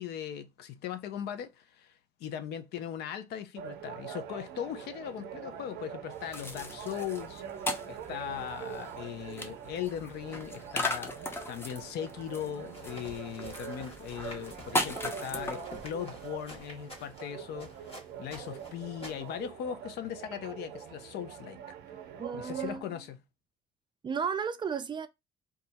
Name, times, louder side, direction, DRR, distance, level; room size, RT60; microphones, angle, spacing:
voice 1, 0.0-1.9 2.2-7.4 7.9-21.6 22.3-23.2, left 10 dB, 75° left, 0.6 m, -39 dB
sound 1, 3.6-22.8, right 9 dB, 80° right, 0.5 m, -44 dB
sound 2, 6.1-16.1, left 1 dB, 15° left, 0.6 m, -38 dB
sound 3, 12.7-19.5, equal, 35° left, 1.3 m, -50 dB
voice 2, 22.2-22.9 24.0-25.1, right 6 dB, 25° right, 0.4 m, -33 dB
2.7 x 2.3 x 4.0 m
cardioid pair, 110°, 17 cm